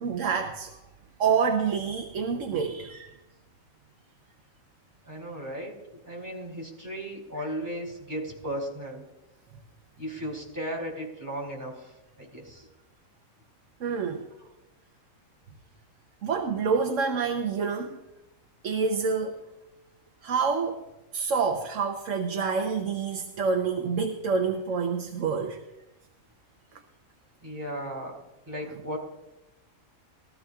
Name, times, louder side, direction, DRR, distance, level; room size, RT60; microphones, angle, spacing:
voice 1, 0.0-0.8 1.2-3.1 13.8-14.3 16.2-18.0 18.6-19.4 20.2-20.8 21.1-25.6 28.7-28.8, right 5 dB, 70° right, 4 dB, 1.3 m, -27 dB
voice 2, 5.0-5.7 6.0-9.0 10.0-11.9 12.2-12.7 27.4-28.2 28.5-29.0, equal, 15° right, -3 dB, 3.7 m, -35 dB
22.5 x 13.5 x 2.4 m, 0.96 s
omnidirectional pair, 1.4 m